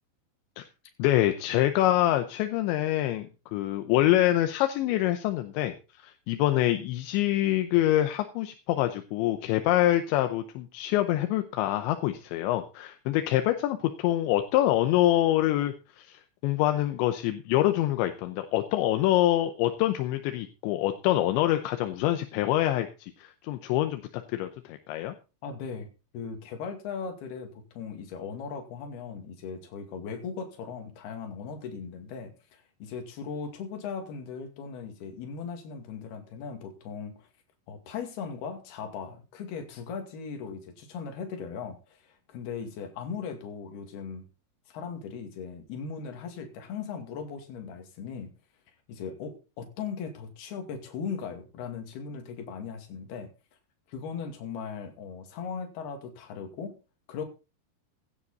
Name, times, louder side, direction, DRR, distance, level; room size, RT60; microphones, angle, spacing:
voice 1, 1.0-25.1, left 14 dB, 80° left, 8 dB, 2.9 m, -26 dB
voice 2, 25.4-25.9 26.1-37.3 37.7-44.3 44.7-48.3 48.9-53.3 53.9-56.8 57.1-57.2, left 6 dB, 60° left, 5 dB, 3.9 m, -38 dB
16.0 x 10.0 x 4.1 m, 0.32 s
omnidirectional pair, 5.7 m